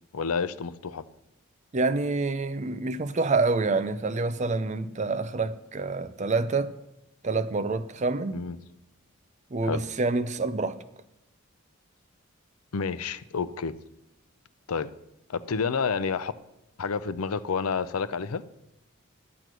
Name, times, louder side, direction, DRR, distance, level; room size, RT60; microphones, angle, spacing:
voice 1, 0.1-1.0 8.3-8.6 9.6-9.8 12.7-13.8 14.7-14.9 15.3-16.3 16.8-18.4, left 5 dB, 85° left, 0.6 m, -29 dB
voice 2, 1.7-6.7 7.2-8.4 9.5-10.8, right 3 dB, 35° right, 0.5 m, -27 dB
10.5 x 8.0 x 6.2 m
head